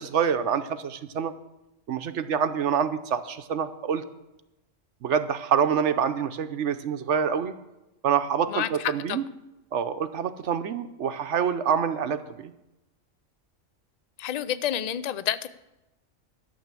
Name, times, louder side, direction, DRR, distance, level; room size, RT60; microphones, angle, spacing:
voice 1, 0.0-1.3 1.9-4.0 5.0-7.5 8.0-9.2 9.7-12.5, right 7 dB, 70° right, 10 dB, 1.0 m, -26 dB
voice 2, 14.2-15.5, left 10 dB, 60° left, 14 dB, 0.4 m, -29 dB
12.5 x 7.0 x 7.5 m, 0.95 s
omnidirectional pair, 1.3 m